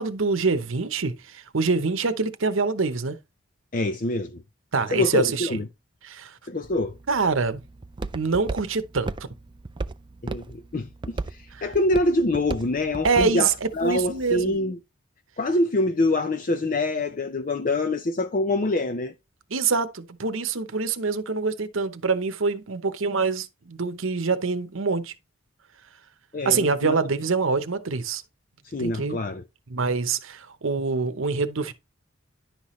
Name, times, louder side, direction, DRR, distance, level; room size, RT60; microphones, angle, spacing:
voice 1, 0.0-3.2 4.7-5.5 6.0-6.4 7.1-7.6 8.1-9.1 11.6-11.7 13.0-14.6 19.5-25.1 26.4-28.2 28.8-29.2 29.7-31.7, right 4 dB, 70° right, 0.9 m, -25 dB
voice 2, 3.7-4.4 4.9-5.7 6.5-6.9 10.2-14.8 15.4-19.1 26.3-27.0 28.7-29.4, left 2 dB, 40° left, 0.5 m, -25 dB
Walk footsteps, 6.6-14.6, right 3 dB, 20° right, 0.4 m, -37 dB
10.5 x 5.8 x 3.1 m
head